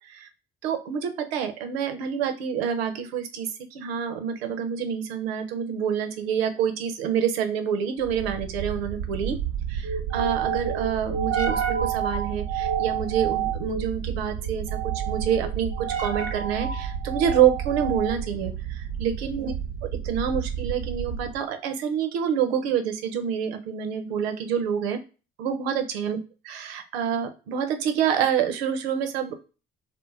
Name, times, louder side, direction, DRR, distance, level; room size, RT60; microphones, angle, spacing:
voice 1, 0.6-9.3 9.7-19.5 20.0-25.0 25.4-26.2 26.4-29.3, right 8 dB, 85° right, 7 dB, 0.6 m, -27 dB
sound 1, 8.0-21.4, right 8 dB, 55° right, 0.7 m, -29 dB
2.3 x 2.1 x 3.2 m, 0.33 s
hypercardioid pair, 55°, 30 cm